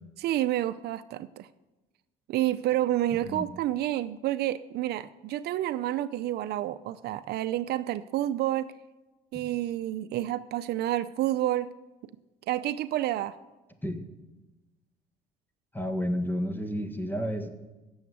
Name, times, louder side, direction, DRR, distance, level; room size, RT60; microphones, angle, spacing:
voice 1, 0.2-1.5 2.3-8.7 9.3-11.7 12.5-13.4, right 13 dB, 70° right, 13 dB, 0.6 m, -29 dB
voice 2, 15.7-17.5, equal, 10° left, 7 dB, 1.7 m, -31 dB
15.5 x 7.2 x 9.4 m, 1.1 s
cardioid pair, 110°, 17 cm